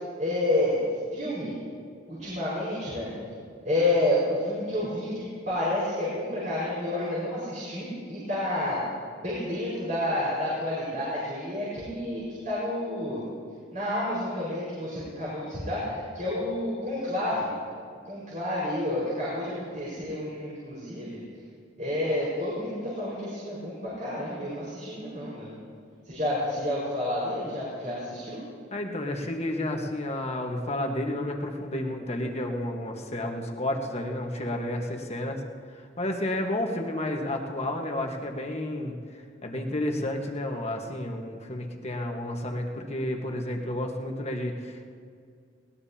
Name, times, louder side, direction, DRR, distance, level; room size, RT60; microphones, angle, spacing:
voice 1, 0.2-0.8 1.1-1.5 2.1-3.1 3.6-8.8 9.2-13.3 13.7-17.5 18.1-21.2 21.8-25.6 26.1-28.4, left 1 dB, 45° right, -9 dB, 5.1 m, -29 dB
voice 2, 28.7-35.4 35.7-44.9, left 1 dB, 35° left, 2 dB, 1.4 m, -31 dB
20.0 x 19.5 x 2.9 m, 2.2 s
head